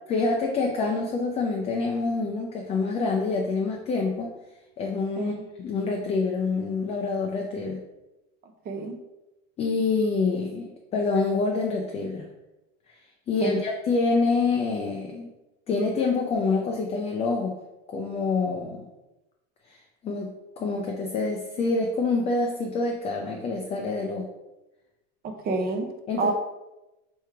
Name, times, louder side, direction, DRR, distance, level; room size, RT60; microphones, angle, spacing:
voice 1, 0.1-4.3 4.8-7.8 9.6-12.2 13.3-15.3 15.7-17.6 17.9-18.9 19.7-24.3 26.1-26.3, left 3 dB, 20° left, 0 dB, 0.3 m, -26 dB
voice 2, 25.4-25.9 26.2-26.3, right 3 dB, 30° right, 5 dB, 0.6 m, -28 dB
3.5 x 3.0 x 4.7 m, 0.99 s
supercardioid pair, 135°, 33 cm